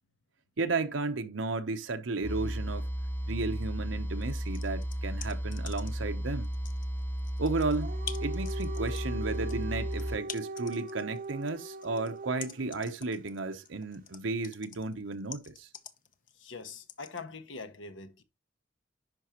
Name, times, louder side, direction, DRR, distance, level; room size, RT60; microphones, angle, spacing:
voice 1, 0.6-2.9 3.3-6.5 7.4-15.7, right 3 dB, 85° right, 0.9 m, -33 dB
sound 1, 2.2-10.2, equal, 10° left, 0.6 m, -34 dB
sound 2, 4.2-6.1 6.4-17.2, left 8 dB, 45° left, 0.9 m, -46 dB
Dog, 7.5-12.7, right 2 dB, 45° right, 0.7 m, -41 dB
voice 2, 16.3-18.2, left 4 dB, 80° left, 1.2 m, -43 dB
11.0 x 5.4 x 3.0 m
head